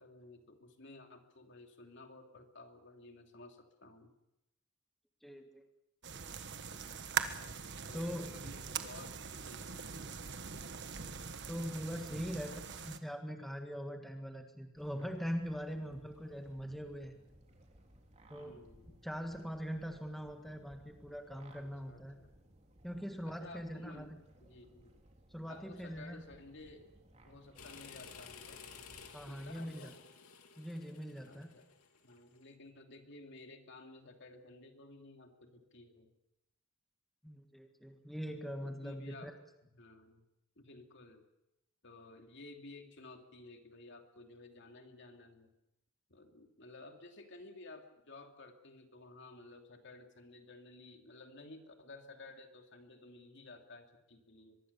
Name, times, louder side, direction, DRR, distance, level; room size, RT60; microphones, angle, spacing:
voice 1, 0.0-4.1 7.9-10.1 18.3-19.1 21.6-22.3 22.9-25.0 25.5-26.9 27.2-28.6 29.2-29.9 31.3-31.6 32.0-36.1 38.6-39.3 39.7-40.2 40.6-41.2 41.8-45.5 46.1-54.6, left 2 dB, 55° left, 4 dB, 2.9 m, -54 dB
voice 2, 5.2-5.7 7.9-8.3 11.5-17.2 18.3-18.6 19.0-22.2 22.8-24.2 25.3-26.2 29.1-29.9 30.6-31.5 37.2-39.3, equal, ahead, 4 dB, 1.8 m, -42 dB
sound 1, 6.0-13.0, right 6 dB, 50° right, 1.4 m, -42 dB
sound 2, 14.7-29.3, right 1 dB, 30° right, 3.2 m, -62 dB
sound 3, 27.6-32.4, left 6 dB, 85° left, 2.9 m, -54 dB
23.5 x 22.5 x 7.0 m, 0.89 s
head